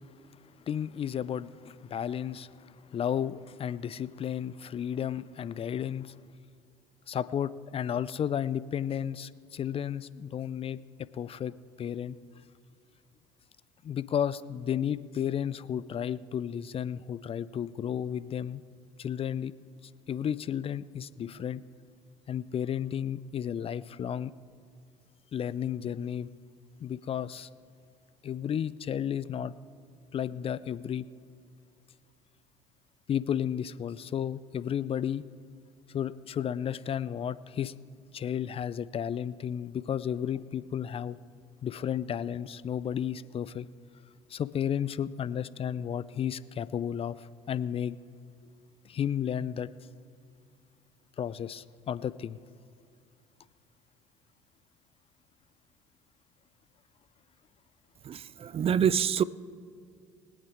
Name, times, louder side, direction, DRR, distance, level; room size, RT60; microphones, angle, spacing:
voice 1, 0.7-6.2 7.1-10.8 11.1-11.5 11.8-12.2 13.8-18.6 19.0-19.5 20.1-21.6 22.3-24.3 25.3-26.3 26.8-27.5 28.2-29.5 30.1-31.1 33.1-35.2 35.9-37.7 38.1-41.2 41.6-43.7 44.3-48.0 48.8-49.7 51.2-52.4, left 9 dB, 40° left, 17 dB, 0.4 m, -33 dB
voice 2, 58.1-59.2, right 8 dB, 40° right, 19 dB, 0.4 m, -26 dB
22.5 x 8.8 x 3.5 m, 2.5 s
hypercardioid pair, 65°, 15 cm